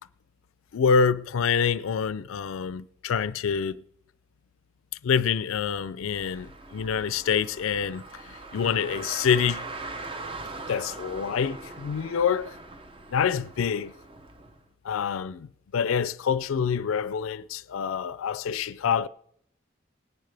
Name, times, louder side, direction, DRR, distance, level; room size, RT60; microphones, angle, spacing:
voice 1, 0.7-3.8 5.0-9.6 10.7-12.6 13.1-13.9 14.8-19.1, left 6 dB, 80° left, 0.4 m, -26 dB
Car, 6.0-14.6, right 3 dB, 25° right, 0.6 m, -41 dB
19.0 x 10.5 x 3.3 m
head